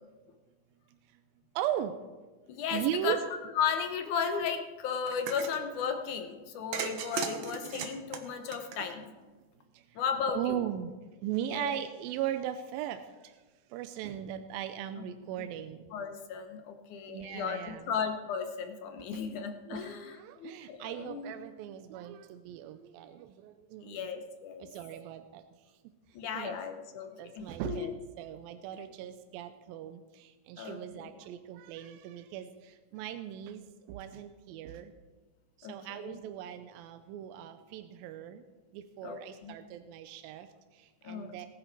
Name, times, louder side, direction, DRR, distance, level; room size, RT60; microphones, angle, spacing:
voice 1, 1.6-2.0 2.7-3.2 9.7-10.0 10.3-11.0 11.2-13.4 13.7-15.8 17.1-17.9 19.1-19.2 19.7-24.1 24.6-25.4 26.3-26.6 27.2-34.9 35.6-38.4 38.7-41.5, right 11 dB, 90° right, 9 dB, 2.4 m, -38 dB
voice 2, 2.5-3.2 3.6-9.1 10.0-10.6 11.4-11.7 15.9-21.4 23.8-24.7 26.1-27.9 30.6-31.1 35.6-36.2 39.0-39.5 41.0-41.3, left 6 dB, 70° left, 6 dB, 2.2 m, -35 dB
sound 1, 5.1-5.6 6.7-9.2, right 6 dB, 65° right, 2.0 m, -37 dB
18.5 x 10.5 x 4.6 m, 1.3 s
omnidirectional pair, 4.1 m